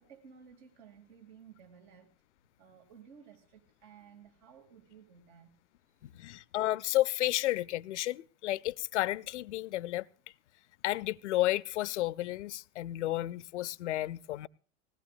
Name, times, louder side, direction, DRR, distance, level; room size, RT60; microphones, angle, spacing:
voice 1, 0.0-2.1 2.6-5.6 5.9-6.2, right 7 dB, 60° right, 2.9 m, -56 dB
voice 2, 6.0-10.0 10.8-14.5, left 16 dB, 70° left, 0.6 m, -32 dB
20.0 x 17.5 x 2.6 m
figure-of-eight pair, 80°, 36 cm